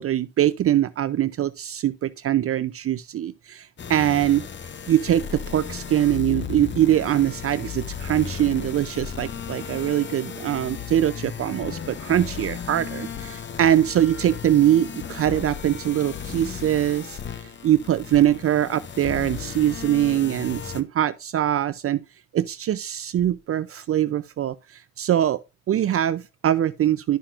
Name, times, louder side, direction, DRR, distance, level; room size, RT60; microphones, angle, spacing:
voice 1, 0.0-4.4 4.9-22.0 22.3-25.4 25.7-27.2, right 11 dB, 50° right, 0.5 m, -23 dB
sound 1, 3.8-20.8, left 7 dB, 40° left, 0.8 m, -35 dB
11.5 x 5.8 x 2.4 m
cardioid pair, 90°, 30 cm